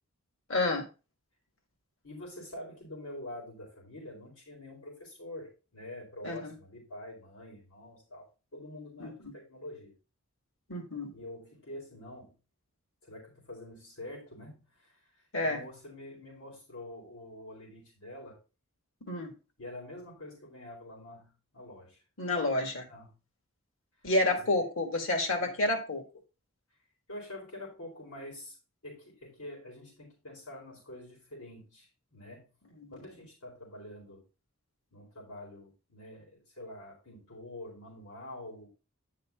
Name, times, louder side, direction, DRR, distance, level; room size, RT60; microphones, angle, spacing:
voice 1, 0.5-0.8 6.2-6.5 9.0-9.1 10.7-11.1 15.3-15.6 19.0-19.3 22.2-22.9 24.0-26.0 32.8-32.9, left 2 dB, 65° left, 4 dB, 1.8 m, -29 dB
voice 2, 2.0-8.3 8.5-9.9 11.1-12.3 13.0-18.4 19.6-22.0 22.9-23.2 24.2-24.6 25.4-25.6 27.1-28.6 28.8-32.4 32.9-34.2 34.9-38.7, left 1 dB, 90° left, -2 dB, 4.5 m, -46 dB
10.0 x 5.8 x 3.6 m, 0.31 s
head